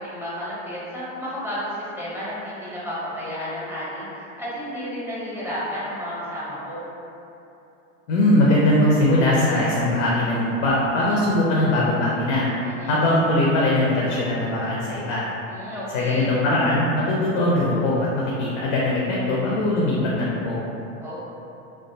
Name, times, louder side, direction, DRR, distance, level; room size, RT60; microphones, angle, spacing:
voice 1, 0.0-6.9 12.6-13.0 15.5-16.4 21.0-21.2, equal, 5° right, -9 dB, 0.6 m, -32 dB
voice 2, 8.1-12.5 12.9-15.2 15.9-20.6, left 1 dB, 65° left, -5 dB, 0.6 m, -21 dB
2.4 x 2.2 x 2.5 m, 2.8 s
hypercardioid pair, 95°, 39 cm